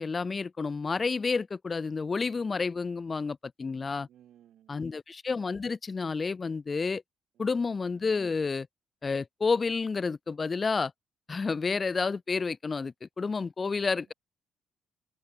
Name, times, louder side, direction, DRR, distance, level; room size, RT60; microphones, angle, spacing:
voice 1, 0.0-4.1 4.7-7.0 7.4-8.7 9.0-10.9 11.3-14.1, left 4 dB, 25° left, 0.4 m, -30 dB
voice 2, 4.1-5.0 7.4-7.7 13.7-14.0, right 11 dB, 65° right, 4.9 m, -60 dB
cardioid pair, 145°, 0 cm